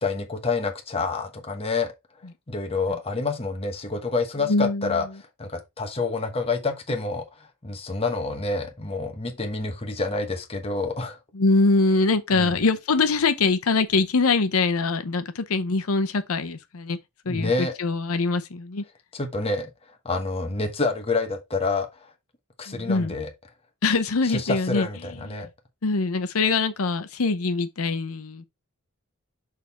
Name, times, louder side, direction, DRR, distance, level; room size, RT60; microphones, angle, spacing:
voice 1, 0.0-1.9 2.5-5.1 5.4-11.2 12.3-12.6 17.3-17.7 19.1-19.7 20.0-22.1 22.6-23.3 24.2-25.5, left 3 dB, 25° left, 1.1 m, -28 dB
voice 2, 4.5-5.0 11.3-17.0 17.2-18.8 22.7-23.1 23.8-24.9 25.3-25.5 25.8-28.4, left 3 dB, 80° left, 0.7 m, -23 dB
6.6 x 3.6 x 4.2 m
head